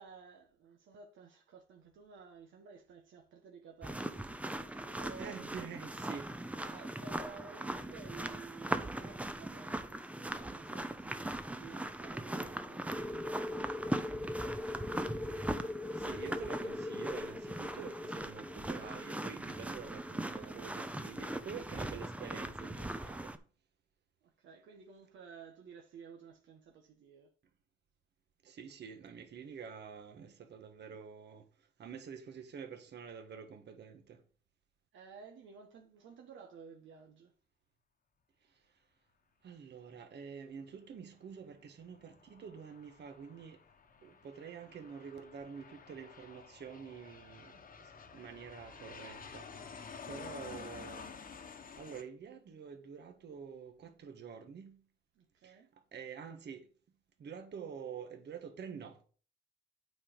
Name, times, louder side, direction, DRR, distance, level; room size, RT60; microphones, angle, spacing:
voice 1, 0.0-4.3 4.8-5.6 6.6-14.7 24.2-27.3 34.9-37.3 55.1-55.7, right 5 dB, 75° right, 1.3 m, -54 dB
sound 1, 3.8-23.4, right 1 dB, 5° right, 0.7 m, -40 dB
voice 2, 5.1-6.3 16.0-23.3 28.4-31.4 31.8-34.2 39.4-43.6 44.0-47.5 48.1-49.4 50.1-51.1 51.8-54.8 55.4-55.5 55.9-56.6 57.2-59.0, right 7 dB, 60° right, 1.5 m, -47 dB
sound 2, 12.9-21.2, left 2 dB, 10° left, 1.1 m, -42 dB
Aircraft, 41.8-52.0, left 5 dB, 45° left, 1.2 m, -51 dB
8.7 x 4.5 x 5.2 m
cardioid pair, 90°, 20 cm